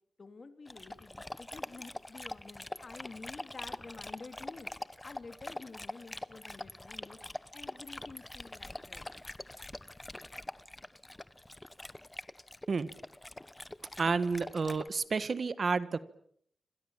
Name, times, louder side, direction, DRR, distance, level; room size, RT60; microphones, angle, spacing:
voice 1, 0.2-4.7 5.0-7.2 7.5-9.1, left 3 dB, 35° left, 9 dB, 3.1 m, -50 dB
Dog, 0.7-14.9, left 1 dB, 15° left, 1.1 m, -44 dB
voice 2, 14.0-16.0, right 4 dB, 45° right, 14 dB, 1.4 m, -30 dB
27.5 x 26.5 x 7.3 m, 0.66 s
wide cardioid pair, 125°, 0 cm